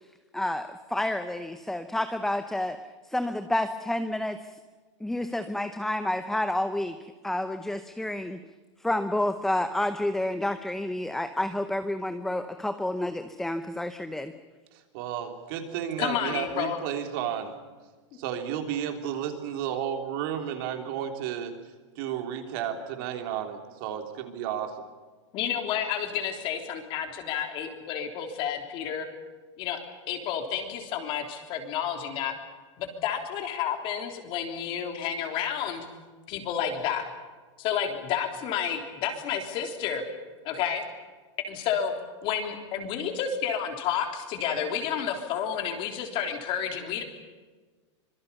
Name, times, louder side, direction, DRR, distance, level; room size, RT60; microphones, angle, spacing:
voice 1, 0.3-2.8 3.1-4.5 5.0-8.4 8.8-14.3, left 1 dB, ahead, 9 dB, 0.7 m, -29 dB
voice 2, 14.7-17.5 18.2-21.5 22.0-24.7, right 9 dB, 45° right, 5 dB, 3.4 m, -32 dB
voice 3, 16.0-16.8 25.3-29.1 29.6-29.8 30.1-32.3 32.8-35.9 36.3-37.1 37.6-40.0 40.4-40.8 41.5-41.9 42.2-47.0, left 8 dB, 35° left, 5 dB, 3.5 m, -30 dB
25.5 x 22.5 x 7.0 m, 1.3 s
supercardioid pair, 160°, 16 cm